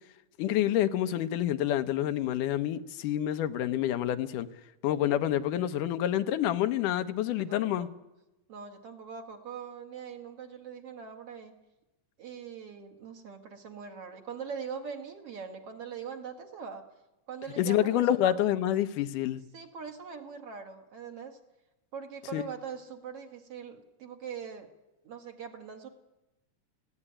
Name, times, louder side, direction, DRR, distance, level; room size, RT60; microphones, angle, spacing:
voice 1, 0.4-4.5 4.8-7.9 17.6-19.4 22.3-22.4, left 12 dB, 85° left, 2.4 m, -28 dB
voice 2, 7.4-7.9 8.5-11.6 12.2-16.9 17.3-18.4 19.5-21.4 21.9-24.7 25.0-25.9, right 6 dB, 50° right, 2.5 m, -42 dB
20.0 x 16.0 x 9.9 m
omnidirectional pair, 3.6 m